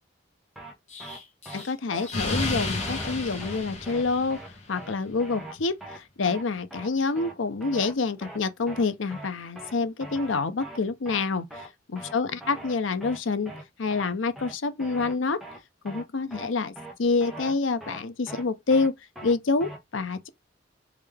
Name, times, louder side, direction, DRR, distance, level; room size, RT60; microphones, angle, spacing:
sound 1, 0.6-0.7 1.0-1.2 1.5-1.6 1.9-2.1 2.4-2.5 2.8-3.1 3.4-3.6 3.9-4.0 4.3-4.5 4.8-4.9 5.2-5.5 5.8-6.0 6.3-6.4 6.7-6.9 7.2-7.3 7.6-7.9 8.2-8.4 8.7-8.8 9.1-9.3 9.6-9.7 10.0-10.3 10.6-10.8 11.1-11.2 11.5-11.7 12.0-12.1 12.4-12.7 13.0-13.2 13.5-13.6 13.9-14.1 14.4-14.5 14.8-15.1 15.4-15.6 15.9-16.0 16.3-16.5 16.8-16.9 17.2-17.5 17.8-18.0 18.3-18.4 18.7-18.9 19.2-19.3 19.6-19.8, right 1 dB, ahead, 1.2 m, -41 dB
Explosion, 0.9-4.7, left 2 dB, 40° left, 1.6 m, -32 dB
voice 1, 1.5-4.4 4.7-13.5 13.8-15.4 15.8-16.7 17.0-18.9 19.2-20.3, left 4 dB, 85° left, 0.7 m, -27 dB
3.7 x 3.3 x 3.4 m
head